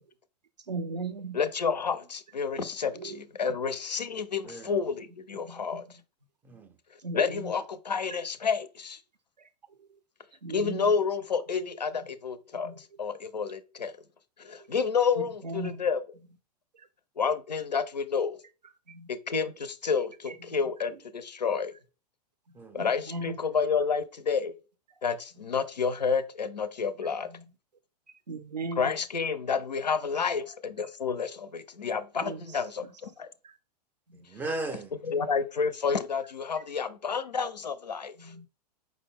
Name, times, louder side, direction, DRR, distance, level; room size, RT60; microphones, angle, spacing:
voice 1, 0.7-1.4 3.0-3.2 5.4-5.8 7.0-7.5 10.4-10.9 12.6-12.8 14.6-14.7 15.4-15.8 18.9-19.1 20.3-20.4 22.8-23.4 27.3-27.4 28.3-29.0 32.2-32.4 34.1-34.2 38.2-38.5, right 2 dB, 80° right, 0.5 m, -37 dB
voice 2, 1.3-5.8 7.1-9.0 10.5-13.9 14.4-16.0 17.2-18.4 19.1-21.7 22.7-24.5 25.0-27.3 28.8-32.8 35.1-38.3, left 5 dB, 80° left, 0.4 m, -30 dB
voice 3, 4.4-4.8 6.4-6.8 22.5-22.8 34.1-35.0, right 2 dB, 10° right, 0.4 m, -37 dB
4.9 x 2.1 x 3.6 m
figure-of-eight pair, 100°, 21 cm